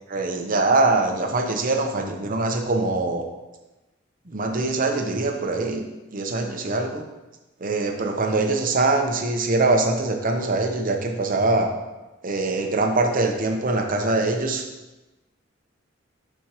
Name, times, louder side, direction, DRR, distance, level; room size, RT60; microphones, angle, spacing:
voice 1, 0.1-3.2 4.3-5.8 6.1-7.0 7.6-11.7 12.2-14.6, right 2 dB, 45° right, 4 dB, 0.8 m, -23 dB
11.0 x 4.4 x 3.0 m, 1.1 s
head